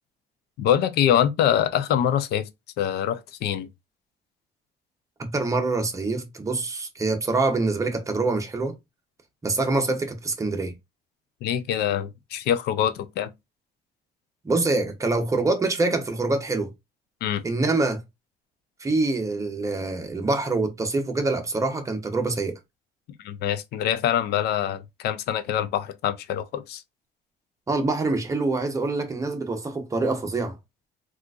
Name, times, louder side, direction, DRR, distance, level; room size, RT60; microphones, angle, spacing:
voice 1, 0.6-2.5 2.8-3.7 11.4-13.3 17.2-17.4 23.2-26.8, left 10 dB, 75° left, 0.5 m, -24 dB
voice 2, 5.2-8.7 9.4-10.7 14.4-16.7 17.4-18.0 18.8-22.6 27.7-30.6, right 3 dB, 20° right, 0.8 m, -25 dB
3.7 x 2.5 x 2.4 m
cardioid pair, 110°, 17 cm